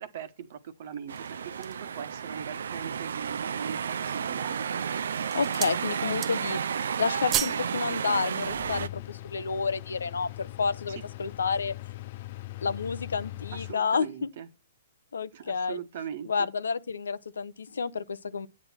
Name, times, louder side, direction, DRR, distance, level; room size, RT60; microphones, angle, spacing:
voice 1, 0.0-4.9 10.9-11.0 13.5-14.5 15.3-16.5, right 8 dB, 55° right, 1.3 m, -41 dB
sound 1, 0.9-1.9 2.5-2.6 3.1-3.7 4.4-4.7 5.1-5.8 6.1-6.6 6.9-7.7 8.0-8.1, right 11 dB, 30° right, 0.7 m, -33 dB
sound 2, 1.1-8.9, right 7 dB, 75° right, 0.4 m, -32 dB
voice 2, 5.3-6.6 7.0-11.7 12.6-14.3 15.1-15.8 16.2-18.5, left 5 dB, 80° left, 0.7 m, -30 dB
sound 3, 8.4-13.7, left 17 dB, 50° left, 0.4 m, -41 dB
9.1 x 7.6 x 4.4 m
hypercardioid pair, 125°, 0 cm